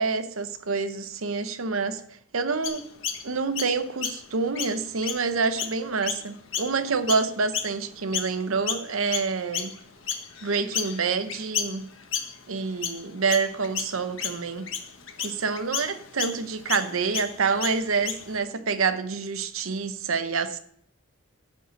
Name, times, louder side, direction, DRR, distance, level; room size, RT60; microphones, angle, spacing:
voice 1, 0.0-2.0 2.3-2.9 3.2-9.8 10.4-11.9 12.5-14.7 15.2-20.6, right 4 dB, 85° right, 0.8 m, -27 dB
Chirp tweet, 2.6-8.4 8.7-18.4, left 8 dB, 75° left, 1.2 m, -33 dB
10.5 x 5.4 x 7.6 m
head